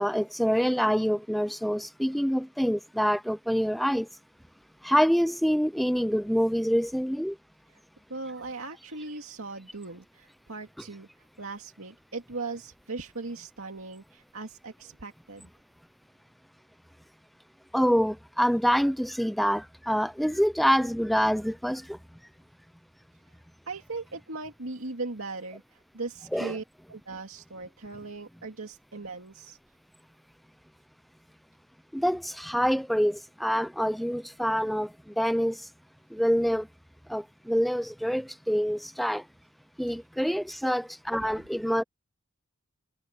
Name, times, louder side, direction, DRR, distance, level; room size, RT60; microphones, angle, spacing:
voice 1, 0.0-4.1 4.8-7.4 17.7-22.0 26.3-26.5 31.9-35.7 36.1-36.7 37.1-39.2 39.8-41.8, equal, ahead, 0.4 m, -26 dB
voice 2, 8.1-11.1 11.4-15.5 23.7-26.6 26.9-29.6 41.2-41.3, right 3 dB, 70° right, 2.3 m, -39 dB
head